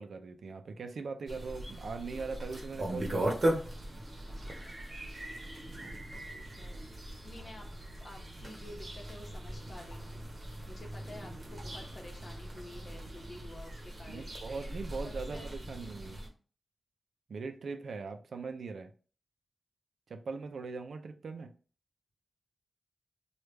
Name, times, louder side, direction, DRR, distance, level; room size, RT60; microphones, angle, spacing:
voice 1, 0.0-3.4 14.1-16.2 17.3-18.9 20.1-21.5, right 4 dB, 75° right, 0.4 m, -40 dB
sound 1, 1.3-16.3, right 1 dB, 45° right, 0.9 m, -39 dB
voice 2, 6.1-7.7 8.0-10.2 10.7-14.4 15.0-15.5, left 1 dB, 50° left, 1.0 m, -50 dB
3.2 x 2.3 x 3.1 m
wide cardioid pair, 80°, 0 cm